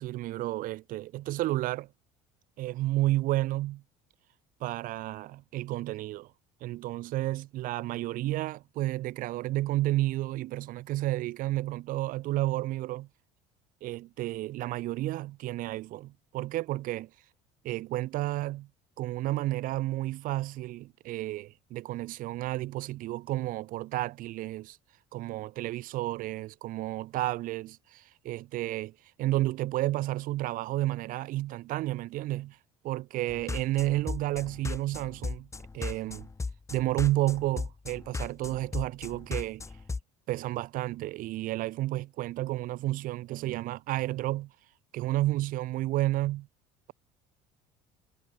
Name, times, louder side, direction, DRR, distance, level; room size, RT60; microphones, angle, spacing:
voice 1, 0.0-1.9 2.6-3.8 4.6-6.3 6.6-13.1 13.8-17.1 17.6-18.7 19.0-24.8 25.1-28.9 29.2-32.6 32.8-35.5 35.7-36.3 36.7-39.6 40.3-44.5 44.9-46.5, right 16 dB, 65° right, 4.8 m, -31 dB
sound 1, 33.3-40.0, left 3 dB, 20° left, 3.7 m, -36 dB
supercardioid pair, 95°, 15 cm